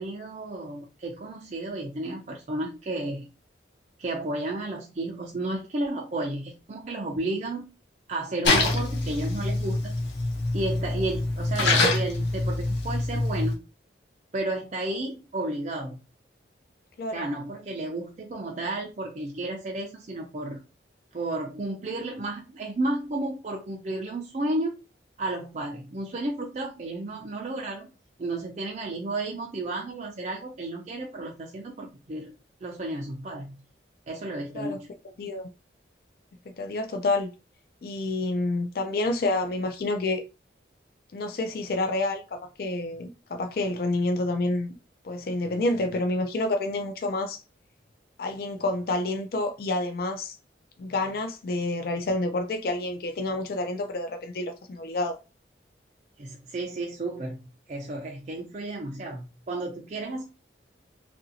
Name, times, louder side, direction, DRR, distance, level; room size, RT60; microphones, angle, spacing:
voice 1, 0.0-3.3 4.0-7.7 8.1-10.0 10.5-13.6 14.3-16.0 17.1-20.6 21.1-24.7 25.2-27.9 28.2-32.3 32.6-33.6 34.1-34.9 56.2-57.4 57.7-60.2, right 2 dB, 40° right, 0.4 m, -32 dB
Splash splatter, 8.4-13.5, left 2 dB, 85° left, 1.0 m, -25 dB
voice 2, 35.2-35.5 36.6-37.3 37.8-40.2 41.1-44.8 45.0-47.4 48.2-50.4 50.8-55.2, left 2 dB, 50° left, 0.4 m, -28 dB
2.8 x 2.6 x 2.7 m
head